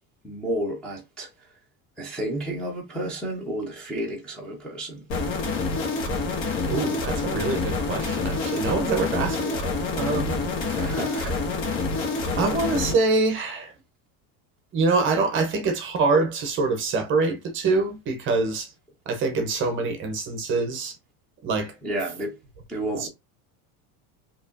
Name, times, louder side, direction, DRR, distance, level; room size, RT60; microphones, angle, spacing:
voice 1, 0.2-1.3 2.0-5.0 10.8-11.4 12.3-12.4 21.8-22.4 22.7-23.1, right 1 dB, ahead, 0.6 m, -31 dB
sound 1, 5.1-12.9, left 3 dB, 60° left, 1.5 m, -27 dB
voice 2, 6.7-9.7 9.9-10.4 10.7-10.8 12.4-13.7 14.7-18.7 19.1-21.0 21.4-21.7 23.0-23.1, right 3 dB, 30° right, 0.7 m, -25 dB
4.7 x 2.9 x 2.5 m
cardioid pair, 175°, 43 cm